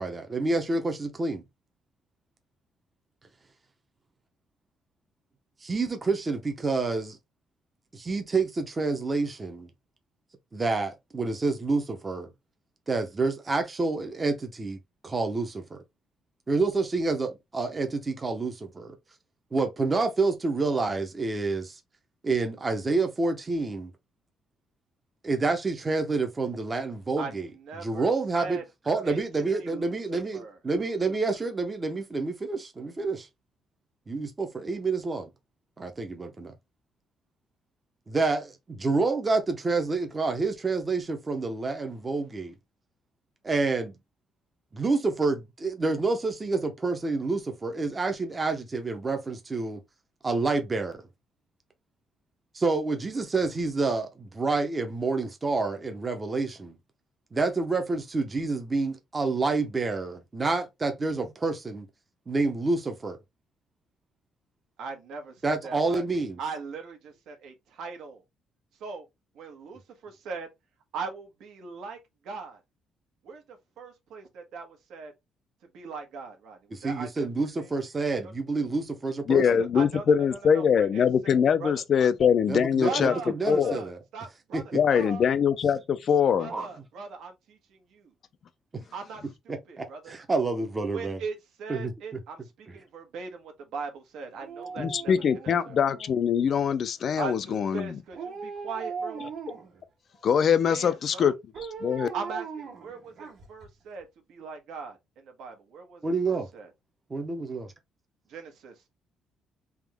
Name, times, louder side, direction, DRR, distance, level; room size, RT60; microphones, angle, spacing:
voice 1, 0.0-1.4 5.6-7.2 7.9-9.7 10.5-12.3 12.9-15.8 16.5-19.0 19.5-21.8 22.2-23.9 25.2-27.5 27.8-28.6 28.9-33.3 34.1-35.3 35.8-36.5 38.1-42.5 43.4-44.0 44.7-49.8 50.2-51.0 52.5-56.8 57.3-61.9 62.3-63.2 65.4-66.4 76.7-79.4 82.5-84.0 84.5-84.6 86.5-86.7 89.8-91.2 91.7-92.2 94.8-94.9 106.0-106.5 107.1-107.7, right 3 dB, 20° right, 0.7 m, -28 dB
voice 2, 27.2-28.6 29.0-29.2 29.6-30.6 64.8-68.2 68.8-69.1 69.3-70.5 70.9-72.0 72.2-72.6 73.2-75.1 75.7-77.7 78.2-78.3 79.4-81.1 81.6-82.1 82.8-84.6 84.9-85.2 86.4-88.1 88.9-90.2 90.9-95.1 95.4-95.8 97.2-99.2 100.7-101.3 102.1-106.7 108.3-108.7, right 5 dB, 75° right, 1.2 m, -40 dB
voice 3, 79.3-83.2 83.5-83.8 84.7-86.5 94.8-98.0 100.2-102.1, left 7 dB, 40° left, 0.4 m, -23 dB
Dog, 94.4-96.4 98.1-99.8 101.5-103.7 104.0-104.1, right 5 dB, 55° right, 1.4 m, -39 dB
3.6 x 2.9 x 3.4 m
cardioid pair, 170°, 0 cm